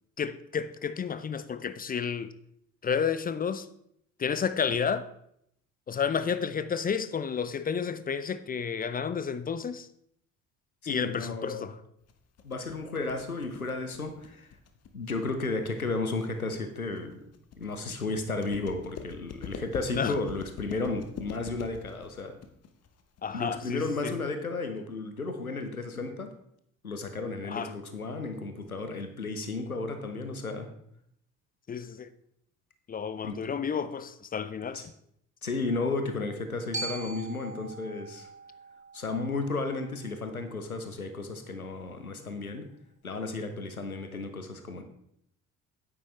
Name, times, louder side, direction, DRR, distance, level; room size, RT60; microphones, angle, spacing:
voice 1, 0.2-2.3 2.8-3.7 4.2-5.1 5.9-9.9 10.9-11.7 19.9-20.2 23.2-24.1 27.5-27.7 31.7-32.1 32.9-34.8, left 6 dB, 20° left, 0.5 m, -31 dB
voice 2, 10.8-11.7 12.4-14.5 14.9-17.2 17.6-22.4 23.3-26.3 26.8-30.7 33.2-33.4 34.7-34.8 35.4-38.3 38.9-42.7 43.0-44.8, left 3 dB, 90° left, 0.8 m, -33 dB
sound 1, 12.1-24.1, left 6 dB, 35° left, 1.1 m, -44 dB
Glockenspiel, 36.7-40.9, right 3 dB, 15° right, 1.5 m, -42 dB
9.7 x 9.2 x 3.3 m
figure-of-eight pair, 50°, 42 cm